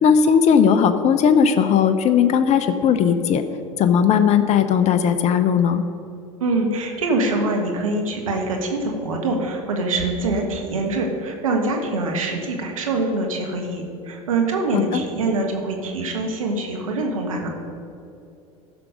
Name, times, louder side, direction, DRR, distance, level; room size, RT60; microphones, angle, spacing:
voice 1, 0.0-3.4 3.8-5.8 14.7-15.0, left 7 dB, 40° left, 9 dB, 0.7 m, -17 dB
voice 2, 6.4-17.5, right 2 dB, 85° right, 2 dB, 1.5 m, -24 dB
14.5 x 6.1 x 5.2 m, 2.7 s
hypercardioid pair, 80°, 17 cm